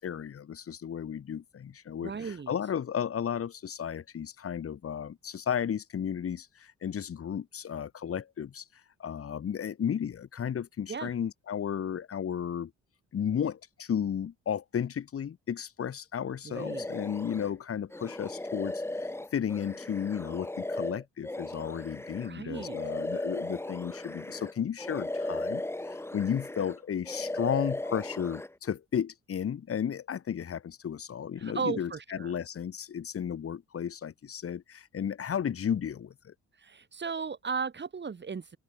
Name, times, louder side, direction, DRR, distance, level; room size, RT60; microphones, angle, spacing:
voice 1, 0.0-8.6 9.0-12.7 13.1-36.3, left 8 dB, 50° left, 2.0 m, -34 dB
voice 2, 2.0-2.5 10.9-11.1 16.4-16.9 22.2-22.8 31.4-32.3 36.6-38.6, right 5 dB, 35° right, 3.5 m, -36 dB
sound 1, 16.5-17.5 17.9-24.5 24.8-26.8 27.0-28.5, left 1 dB, 10° left, 1.5 m, -36 dB
open air
cardioid pair, 90°, 30 cm